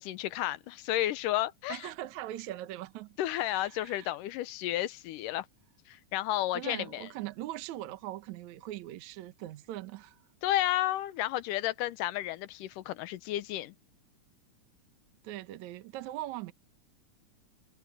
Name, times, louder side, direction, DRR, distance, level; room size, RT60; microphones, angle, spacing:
voice 1, 0.0-1.9 3.2-5.5 5.9-7.1 10.4-13.7, left 14 dB, 90° left, 2.3 m, -32 dB
voice 2, 1.7-3.1 3.4-4.1 6.5-10.2 15.2-16.5, right 14 dB, 70° right, 2.2 m, -41 dB
omnidirectional pair, 3.8 m